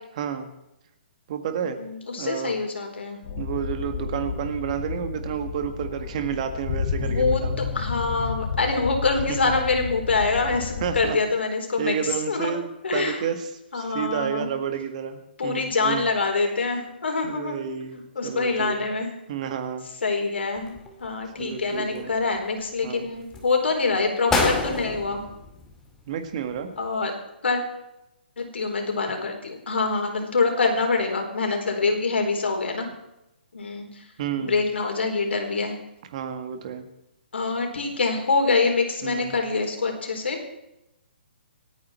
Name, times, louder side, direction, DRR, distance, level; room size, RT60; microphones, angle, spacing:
voice 1, 0.2-0.5 1.3-1.8 2.2-2.5 3.4-7.5 10.8-11.2 11.8-13.5 13.7-16.1 17.2-18.9 19.3-19.9 21.4-22.1 22.8-23.1 26.1-26.7 34.2-34.6 36.1-36.9 39.0-39.3, right 8 dB, 40° right, 7 dB, 1.9 m, -30 dB
voice 2, 1.6-3.2 7.0-13.3 13.7-14.5 15.4-17.6 17.9-19.2 20.0-25.2 26.8-27.1 27.4-27.6 28.4-32.9 33.5-34.1 34.4-35.8 37.3-40.4, left 4 dB, 85° left, 3 dB, 4.4 m, -25 dB
sound 1, 3.2-11.1, left 6 dB, 45° left, 2.2 m, -31 dB
sound 2, 20.6-21.3 21.7-22.6 23.2-23.5 24.0-24.1 24.3-26.2 26.5-26.6, left 3 dB, 10° left, 2.2 m, -28 dB
26.5 x 9.5 x 4.5 m, 0.88 s
hypercardioid pair, 160°, 6 cm